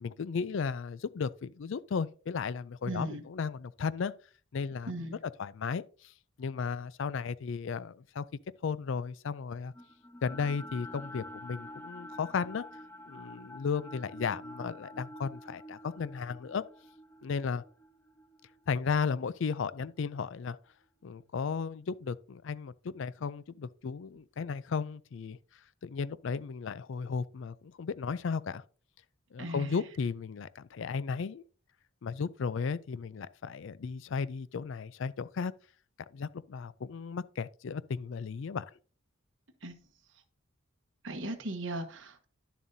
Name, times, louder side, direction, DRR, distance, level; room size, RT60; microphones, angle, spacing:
voice 1, 0.0-4.1 4.5-4.9 5.2-5.8 6.4-8.3 8.6-9.7 10.2-12.6 13.1-16.6 17.2-17.6 18.7-20.6 21.0-25.4 25.8-28.6 29.3-31.4 32.0-35.5 36.1-38.6, left 5 dB, 65° left, 0.4 m, -35 dB
voice 2, 2.9-3.2 4.9-5.2 29.4-29.8 39.6-39.7 41.0-42.3, right 1 dB, 60° right, 1.1 m, -37 dB
sound 1, 9.7-19.9, left 1 dB, 10° left, 1.0 m, -48 dB
10.5 x 7.2 x 2.7 m
head